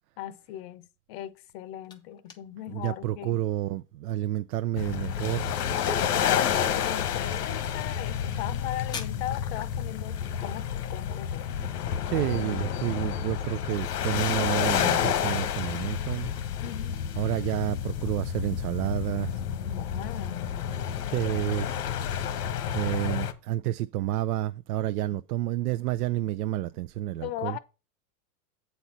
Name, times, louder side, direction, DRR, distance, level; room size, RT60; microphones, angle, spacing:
voice 1, 0.2-3.4 5.9-12.0 16.6-17.0 19.7-20.8 25.1-25.2 27.2-27.6, left 13 dB, 45° left, 0.7 m, -38 dB
sound 1, 1.3-12.0, left 6 dB, 10° left, 0.4 m, -50 dB
voice 2, 2.7-5.5 11.6-11.7 12.1-16.4 17.2-19.4 21.1-21.9 22.1-22.3 22.7-27.6, right 14 dB, 80° right, 0.6 m, -30 dB
sound 2, 4.8-23.3, left 9 dB, 85° left, 1.3 m, -30 dB
sound 3, 15.9-21.0, left 1 dB, 10° right, 0.8 m, -50 dB
8.1 x 4.3 x 5.7 m
supercardioid pair, 145°, 45 cm